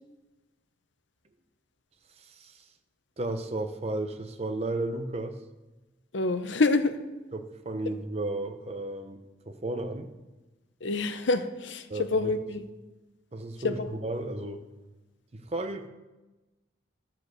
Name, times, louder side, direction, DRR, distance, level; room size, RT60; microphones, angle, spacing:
voice 1, 2.2-2.5 3.2-5.4 7.3-9.2 9.5-10.1 11.9-12.3 13.3-14.6 15.3-15.9, right 2 dB, 35° right, 7 dB, 0.7 m, -33 dB
voice 2, 6.1-7.0 10.8-12.6 13.6-13.9, left 3 dB, 75° left, 9 dB, 0.7 m, -27 dB
12.0 x 4.5 x 7.8 m, 1.1 s
head